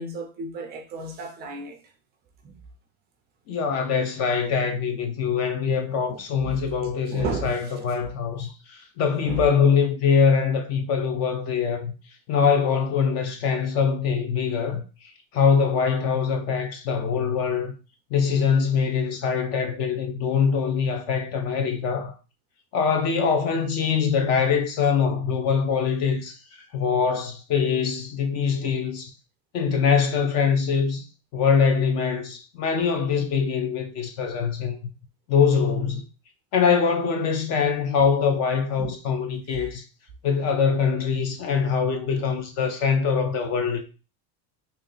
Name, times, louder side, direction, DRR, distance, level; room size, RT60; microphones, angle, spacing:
voice 1, 0.0-1.8 2.4-2.6 6.1-6.6 7.1-7.7 9.2-9.5 38.8-38.9, right 4 dB, 25° right, 0.4 m, -33 dB
voice 2, 3.5-11.9 12.3-14.8 15.3-17.7 18.1-22.1 22.7-26.4 26.7-29.1 29.5-31.0 31.3-34.8 35.3-36.0 36.5-39.8 40.2-43.9, left 6 dB, 35° left, 0.6 m, -23 dB
3.1 x 2.7 x 3.8 m
cardioid pair, 170°, 44 cm